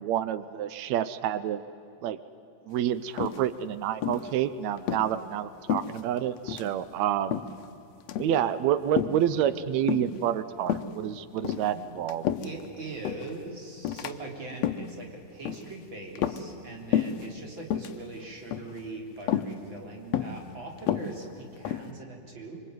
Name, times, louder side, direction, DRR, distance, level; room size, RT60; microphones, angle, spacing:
voice 1, 0.0-1.6 2.0-2.2 2.7-7.4 8.2-12.3, right 10 dB, 85° right, 14 dB, 1.5 m, -28 dB
sound 1, 3.2-3.7 4.0-4.3 4.8-5.1 5.7-6.2 6.5-6.7 7.3-7.7 8.0-8.4 9.0-9.3 9.9-10.2 10.7-10.9 11.4-12.7 13.0-13.3 13.8-14.1 14.5-14.9 15.5-15.7 16.2-16.7 16.9-17.3 17.6-18.0 18.5-18.8 19.3-19.5 20.1-20.4 20.8-21.9, left 10 dB, 75° left, 1.6 m, -30 dB
voice 2, 12.4-22.6, right 2 dB, 35° right, 1 dB, 4.1 m, -41 dB
25.5 x 24.5 x 9.4 m, 2.6 s
omnidirectional pair, 4.2 m